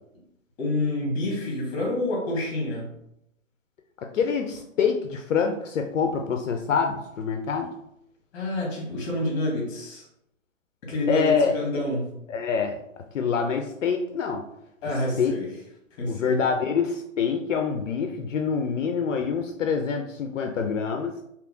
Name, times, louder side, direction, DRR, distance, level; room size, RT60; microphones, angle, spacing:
voice 1, 0.6-2.9 8.3-10.0 10.8-12.1 14.8-15.5 16.0-16.4, left 1 dB, 25° left, -1 dB, 1.2 m, -28 dB
voice 2, 4.1-7.7 11.1-11.5 12.3-12.8 13.1-14.5 15.2-15.3 16.1-21.1, left 6 dB, 65° left, 4 dB, 0.5 m, -25 dB
3.4 x 2.8 x 2.6 m, 0.77 s
hypercardioid pair, 140°, 40 cm